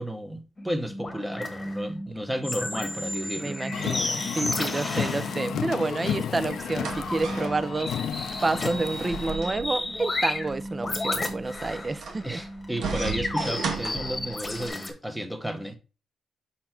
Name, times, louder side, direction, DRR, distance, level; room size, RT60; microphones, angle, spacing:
voice 1, 0.0-3.6 12.2-15.8, equal, 5° right, 0.9 m, -33 dB
sound 1, 0.6-14.9, left 1 dB, 20° left, 1.3 m, -33 dB
voice 2, 3.4-7.9 8.4-12.4, right 3 dB, 20° right, 0.4 m, -29 dB
Car, 3.7-9.4, left 9 dB, 75° left, 0.4 m, -32 dB
sound 2, 6.4-14.7, right 5 dB, 75° right, 1.1 m, -37 dB
5.5 x 4.2 x 4.4 m
wide cardioid pair, 150°, 0 cm